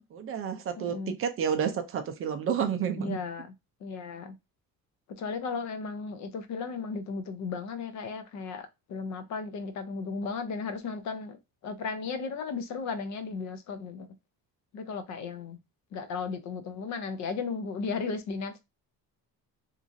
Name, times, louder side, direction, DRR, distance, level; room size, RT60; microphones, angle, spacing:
voice 1, 0.1-3.2, right 7 dB, 40° right, 0.4 m, -30 dB
voice 2, 0.8-1.2 3.0-3.5 3.8-4.3 5.2-11.4 11.6-14.1 14.7-15.6 15.9-18.6, left 4 dB, 50° left, 0.5 m, -35 dB
2.9 x 2.5 x 2.5 m
cardioid pair, 170°, 37 cm